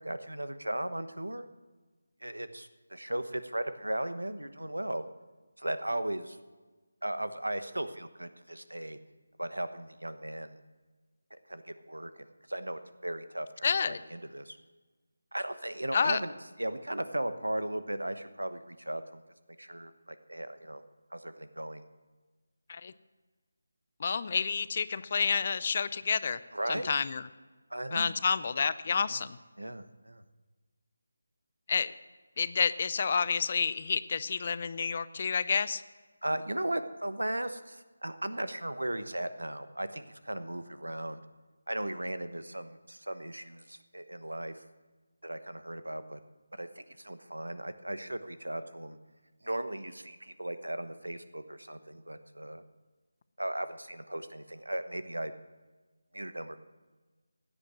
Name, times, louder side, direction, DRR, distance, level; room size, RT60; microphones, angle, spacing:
voice 1, 0.0-1.5 2.2-5.0 5.6-6.4 7.0-9.0 9.4-10.6 11.3-14.6 15.3-16.3 16.6-19.2 19.6-20.8 21.1-21.9 26.5-26.9 27.7-28.1 28.9-29.3 29.6-30.2 36.2-41.2 41.7-44.6 45.2-46.2 46.6-49.0 49.4-52.6 53.4-55.3 56.1-56.6, right 1 dB, 90° right, 11 dB, 1.1 m, -37 dB
voice 2, 13.6-14.0 15.9-16.2 22.7-22.9 24.0-26.4 26.7-27.2 27.9-29.4 31.7-31.9 32.4-35.8, left 5 dB, 40° left, 16 dB, 0.5 m, -29 dB
16.0 x 10.0 x 6.3 m, 1.3 s
figure-of-eight pair, 160°, 0 cm